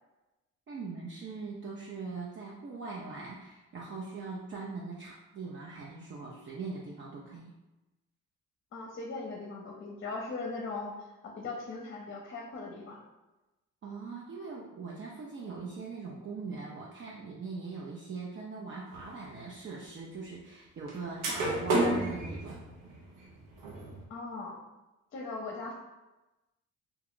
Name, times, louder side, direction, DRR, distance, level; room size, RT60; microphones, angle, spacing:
voice 1, 0.7-7.6 13.8-22.6, right 4 dB, 40° right, -3 dB, 0.5 m, -41 dB
voice 2, 8.7-13.0 24.1-24.6 25.1-25.7, left 3 dB, 40° left, 0 dB, 0.6 m, -39 dB
sound 1, 18.9-19.1 20.9-21.0 21.2-24.0, right 2 dB, 85° right, 0.8 m, -31 dB
2.9 x 2.3 x 3.6 m, 1.0 s
cardioid pair, 90°, 30 cm